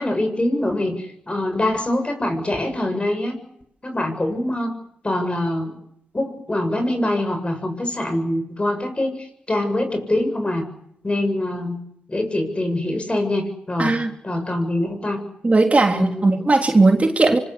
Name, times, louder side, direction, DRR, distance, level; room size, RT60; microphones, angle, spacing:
voice 1, 0.0-3.4 3.8-4.7 5.0-5.8 6.1-10.6 11.0-11.8 12.1-15.2 15.9-16.4, left 1 dB, 30° left, 7 dB, 7.2 m, -24 dB
voice 2, 13.8-14.1 15.4-17.4, right 3 dB, 35° right, 4 dB, 3.4 m, -17 dB
25.0 x 22.0 x 8.4 m, 0.74 s
supercardioid pair, 50°, 4 cm